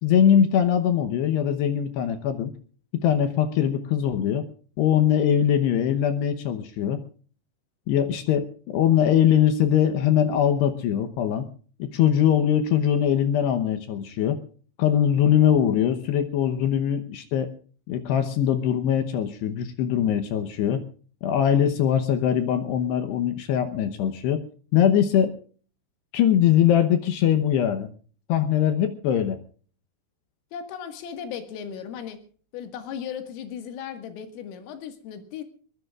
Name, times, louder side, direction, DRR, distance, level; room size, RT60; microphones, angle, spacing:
voice 1, 0.0-2.5 2.9-4.4 4.8-7.0 7.9-11.5 11.8-14.4 14.8-17.5 17.9-20.8 21.2-24.4 24.7-25.3 26.1-27.9 28.3-29.4, left 9 dB, 75° left, 8 dB, 2.7 m, -22 dB
voice 2, 30.5-32.2 32.5-35.4, left 8 dB, 90° left, 8 dB, 4.4 m, -36 dB
22.5 x 20.5 x 2.4 m, 0.42 s
omnidirectional pair, 5.7 m